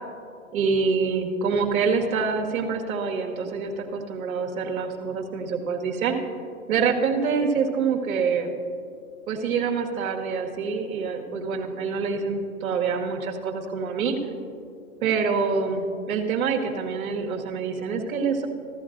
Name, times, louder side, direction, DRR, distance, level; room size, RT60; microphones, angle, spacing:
voice 1, 0.5-6.2 6.7-8.6 9.3-14.2 15.0-18.5, right 5 dB, 80° right, 2 dB, 1.6 m, -26 dB
15.5 x 13.5 x 2.6 m, 2.5 s
hypercardioid pair, 135°, 41 cm